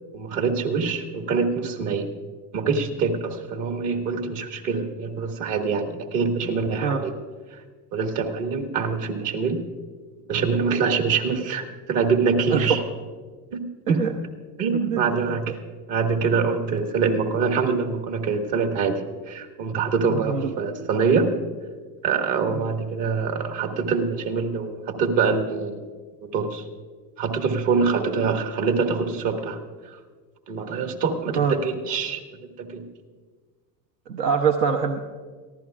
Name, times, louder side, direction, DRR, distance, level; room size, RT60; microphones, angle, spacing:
voice 1, 0.1-2.1 2.5-7.1 7.5-7.6 7.9-9.6 10.3-12.8 13.5-14.0 14.6-15.6 15.9-21.4 22.0-25.8 26.2-26.7 27.2-29.6 30.5-32.2 32.6-32.8, right 5 dB, 60° right, 5 dB, 1.8 m, -24 dB
voice 2, 14.7-15.4 20.1-20.6 22.5-22.6 31.4-31.5 34.1-35.0, right 6 dB, 90° right, 2 dB, 0.9 m, -24 dB
23.5 x 15.0 x 2.4 m, 1.5 s
hypercardioid pair, 80°, 49 cm